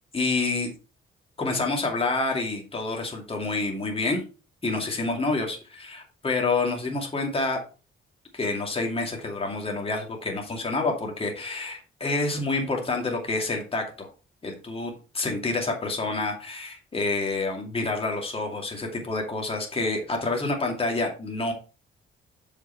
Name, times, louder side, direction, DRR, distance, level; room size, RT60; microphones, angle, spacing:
voice 1, 0.1-0.7 1.4-4.2 4.6-7.6 8.3-14.1 14.4-21.5, left 3 dB, 25° left, 1 dB, 2.4 m, -28 dB
6.8 x 5.8 x 4.3 m, 0.34 s
cardioid pair, 105°, 21 cm